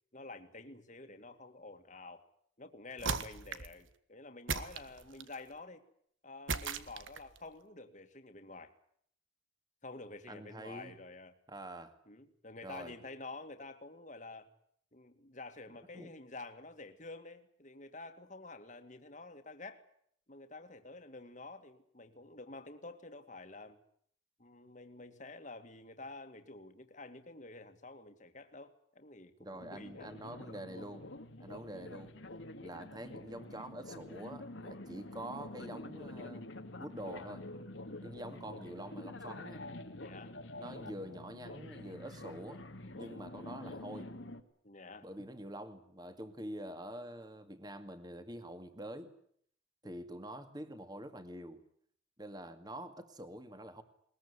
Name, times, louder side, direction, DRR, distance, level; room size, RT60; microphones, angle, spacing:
voice 1, 0.1-2.2 2.6-5.8 6.2-8.7 9.8-11.3 12.1-14.5 14.9-19.8 20.3-23.8 24.4-30.1 31.4-31.6 40.0-40.4 44.6-45.3, left 2 dB, 40° left, 7 dB, 2.2 m, -49 dB
sound 1, 3.0-3.8 4.5-5.4 6.5-7.4, right 5 dB, 85° right, 1.6 m, -37 dB
voice 2, 10.3-11.0 11.5-11.9 12.6-12.9 15.9-16.1 29.4-31.1 31.4-32.2 32.6-36.4 36.8-37.5 38.0-39.6 40.6-42.6 42.9-44.2 45.0-49.1 49.8-51.6 52.2-53.8, right 1 dB, 20° right, 9 dB, 2.2 m, -46 dB
sound 2, 29.6-44.4, left 2 dB, 75° left, 2.2 m, -47 dB
21.5 x 21.0 x 9.8 m, 0.66 s
head